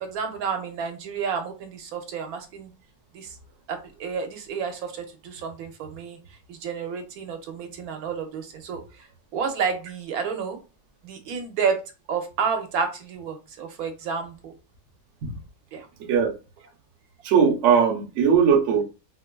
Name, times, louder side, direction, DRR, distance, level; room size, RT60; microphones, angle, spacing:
voice 1, 0.0-2.7 3.1-3.4 3.7-6.2 6.5-9.1 9.3-10.6 11.0-11.8 12.1-14.5 15.7-15.9, right 6 dB, 90° right, 1.2 m, -30 dB
voice 2, 16.0-16.3 17.2-18.8, right 7 dB, 60° right, 0.9 m, -19 dB
4.1 x 2.2 x 2.2 m
omnidirectional pair, 1.5 m